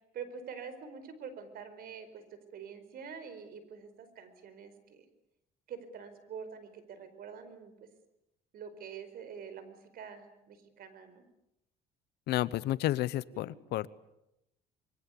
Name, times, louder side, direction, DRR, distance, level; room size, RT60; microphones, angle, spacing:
voice 1, 0.1-5.1 5.7-7.9 8.5-11.2, right 6 dB, 60° right, 12 dB, 4.8 m, -46 dB
voice 2, 12.3-13.9, left 15 dB, 80° left, 18 dB, 1.0 m, -31 dB
25.5 x 23.5 x 8.5 m, 0.84 s
cardioid pair, 110°, 17 cm